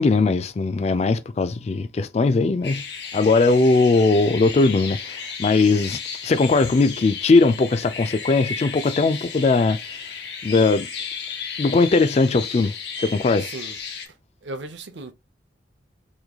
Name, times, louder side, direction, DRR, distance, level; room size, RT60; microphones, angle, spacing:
voice 1, 0.0-2.8 3.1-9.8 10.4-10.9 11.6-13.5, left 3 dB, 35° left, 0.3 m, -19 dB
sound 1, 2.6-14.1, left 6 dB, 65° left, 0.9 m, -34 dB
voice 2, 13.4-13.8 14.4-15.1, right 2 dB, 75° right, 0.7 m, -36 dB
3.6 x 3.1 x 2.3 m
head